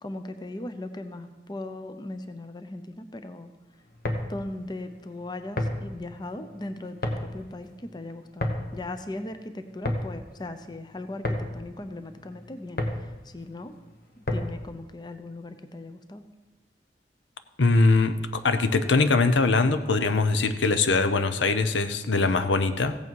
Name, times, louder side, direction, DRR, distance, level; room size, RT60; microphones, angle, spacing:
voice 1, 0.0-3.5 4.3-13.8 14.2-16.2, left 2 dB, 25° left, 9 dB, 0.6 m, -38 dB
sound 1, 3.8-14.7, left 1 dB, 55° left, 1.2 m, -33 dB
voice 2, 17.6-23.0, left 3 dB, 90° left, 10 dB, 0.7 m, -22 dB
15.5 x 8.3 x 4.7 m, 1.2 s
head